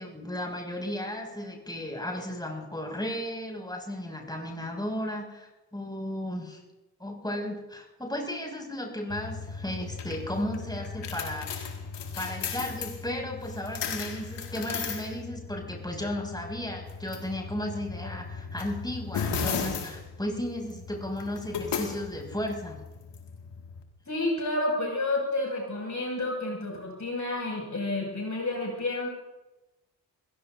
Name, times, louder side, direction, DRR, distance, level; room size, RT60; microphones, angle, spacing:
voice 1, 0.0-6.6 7.0-11.7 12.2-22.8, left 1 dB, 10° left, 0 dB, 6.2 m, -34 dB
sound 1, 9.1-23.8, left 6 dB, 70° left, 2.1 m, -36 dB
voice 2, 24.1-29.1, left 2 dB, 40° left, -1 dB, 6.4 m, -30 dB
27.0 x 16.5 x 2.7 m, 1.0 s
hypercardioid pair, 40°, 44 cm